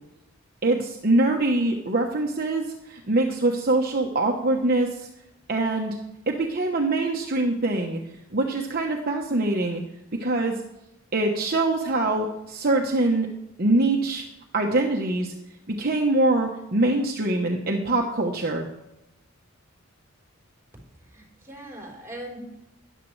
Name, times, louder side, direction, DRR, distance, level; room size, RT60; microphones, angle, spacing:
voice 1, 0.6-5.1 5.5-6.0 6.3-8.0 8.3-9.8 10.2-10.6 11.1-13.3 13.6-14.2 14.5-15.3 15.7-18.7, right 2 dB, 45° right, 1 dB, 1.0 m, -23 dB
voice 2, 20.9-22.7, right 1 dB, 15° right, -3 dB, 4.2 m, -41 dB
13.5 x 10.0 x 3.3 m, 0.89 s
head